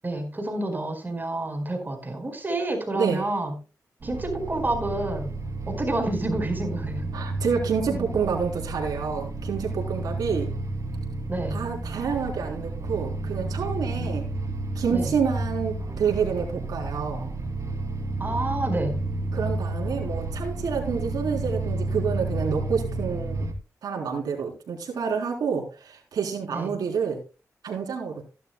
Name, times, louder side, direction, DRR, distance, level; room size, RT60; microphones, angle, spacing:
voice 1, 0.0-3.6 4.0-5.4 5.7-7.1 7.9-8.1 11.3-11.6 14.0-14.2 14.9-15.1 18.2-19.0 26.5-26.7, right 2 dB, 30° right, 4 dB, 4.7 m, -29 dB
sound 1, 4.0-23.5, right 2 dB, 55° right, 2.6 m, -31 dB
voice 2, 7.1-10.5 11.5-14.2 14.8-17.3 19.3-23.5 23.8-27.2 27.6-28.2, right 6 dB, 90° right, 0 dB, 3.7 m, -28 dB
15.5 x 11.5 x 2.2 m, 0.32 s
cardioid pair, 65°, 6 cm